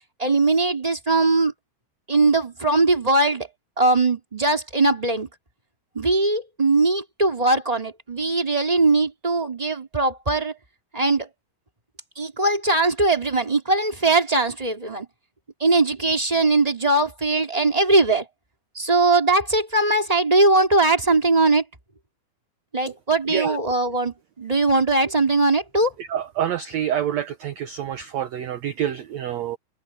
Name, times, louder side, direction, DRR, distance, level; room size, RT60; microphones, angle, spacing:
voice 1, 0.2-1.5 2.1-3.5 3.8-5.3 5.9-10.6 10.9-11.3 12.2-15.1 15.6-18.3 18.7-21.6 22.7-25.9, right 2 dB, 10° right, 2.5 m, -20 dB
voice 2, 26.1-29.6, right 10 dB, 75° right, 1.6 m, -27 dB
omnidirectional pair, 4.3 m